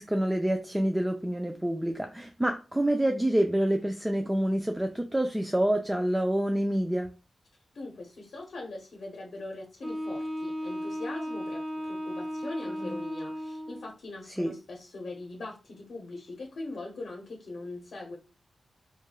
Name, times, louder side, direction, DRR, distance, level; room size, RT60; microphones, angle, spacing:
voice 1, 0.0-7.1 12.8-13.0 14.4-14.5, right 1 dB, 10° right, 4 dB, 0.3 m, -27 dB
voice 2, 7.7-18.2, left 2 dB, 70° left, 0 dB, 0.7 m, -41 dB
Wind instrument woodwind instrument, 9.8-13.9, equal, 35° right, 1.0 m, -35 dB
3.0 x 2.2 x 2.2 m, 0.31 s
wide cardioid pair, 85°, 0 cm